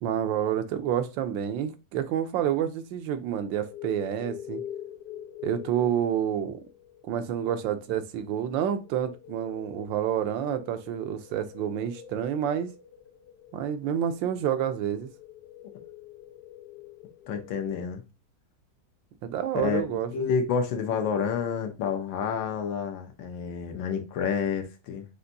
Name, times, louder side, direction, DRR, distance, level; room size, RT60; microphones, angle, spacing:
voice 1, 0.0-4.6 5.4-6.6 7.0-12.7 13.5-15.1 19.2-20.3, right 9 dB, 90° right, 1.4 m, -29 dB
sound 1, 3.4-17.6, left 11 dB, 65° left, 1.0 m, -45 dB
voice 2, 17.3-18.0 19.6-19.8 20.1-25.0, left 6 dB, 90° left, 1.6 m, -29 dB
6.5 x 2.6 x 2.6 m
omnidirectional pair, 2.0 m